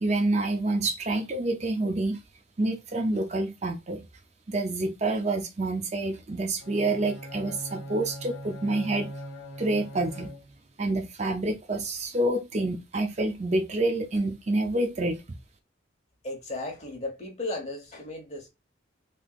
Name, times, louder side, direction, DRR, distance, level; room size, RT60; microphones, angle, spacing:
voice 1, 0.0-2.2 2.6-4.1 4.5-9.1 9.6-10.3 10.8-15.2, right 2 dB, 35° right, 0.5 m, -27 dB
Bowed string instrument, 6.6-10.8, equal, 75° left, 0.9 m, -41 dB
voice 2, 16.2-18.5, left 2 dB, 35° left, 1.1 m, -35 dB
3.4 x 2.9 x 2.4 m
head